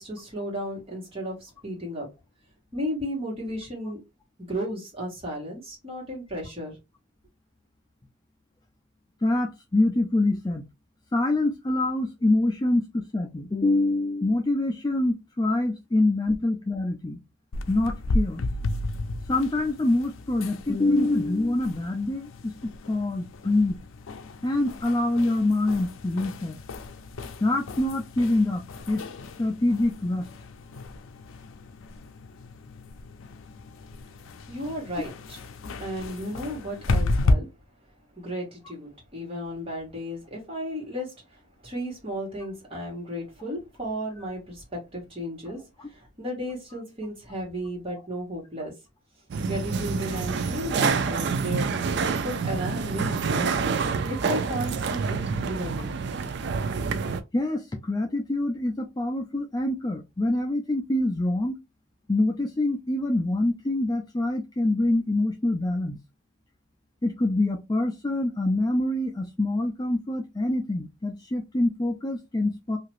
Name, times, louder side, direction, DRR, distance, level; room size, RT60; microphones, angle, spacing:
voice 1, 0.0-2.1 2.7-4.0 4.5-6.8 34.5-35.4 35.8-37.5 38.1-48.7 49.4-53.6 54.1-55.2 55.5-56.0, equal, 30° right, 1.4 m, -34 dB
voice 2, 9.2-10.6 11.1-17.2 17.7-18.4 19.3-22.5 22.9-23.8 24.4-26.6 27.4-29.0 29.4-30.3 45.8-45.9 47.9-48.0 57.3-61.6 62.1-66.0 67.0-72.8, left 2 dB, 20° left, 0.4 m, -25 dB
sound 1, 17.5-37.3, left 2 dB, 80° left, 0.4 m, -33 dB
sound 2, 49.3-57.2, right 5 dB, 55° right, 0.3 m, -27 dB
2.8 x 2.5 x 3.0 m
head